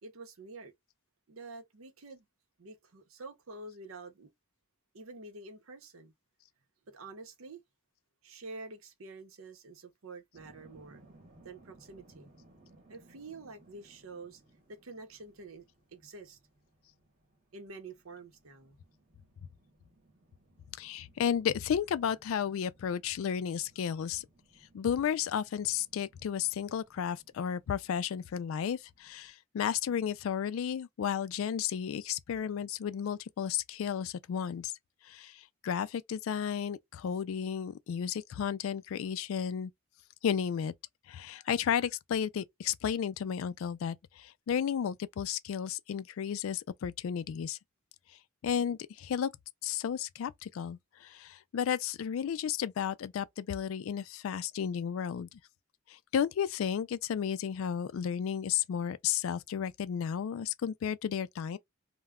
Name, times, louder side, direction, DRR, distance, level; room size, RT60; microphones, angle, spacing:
voice 1, 0.0-0.7 1.3-2.3 2.6-4.3 4.9-6.1 6.9-7.6 8.2-11.0 11.4-12.3 12.9-14.4 14.7-15.6 15.9-16.4 17.5-18.8, right 3 dB, 75° right, 0.7 m, -48 dB
sound 1, 10.3-29.3, right 2 dB, 35° right, 0.9 m, -63 dB
voice 2, 20.8-24.3 24.7-34.7 35.0-39.7 40.2-40.7 41.1-47.6 48.4-49.3 49.6-55.3 55.9-61.6, left 8 dB, 70° left, 0.3 m, -33 dB
2.2 x 2.1 x 3.5 m
head